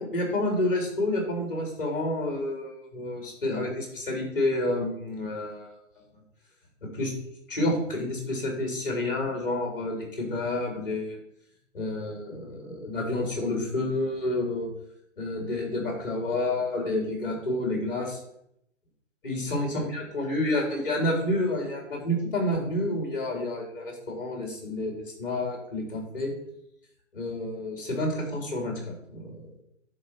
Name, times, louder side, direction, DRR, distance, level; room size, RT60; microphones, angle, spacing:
voice 1, 0.0-5.7 6.9-7.1 7.5-11.2 11.7-14.7 15.2-18.2 19.2-26.3 27.1-28.8 29.1-29.4, left 1 dB, 45° left, 0 dB, 3.5 m, -29 dB
10.0 x 4.3 x 5.9 m, 0.76 s
hypercardioid pair, 175°, 39 cm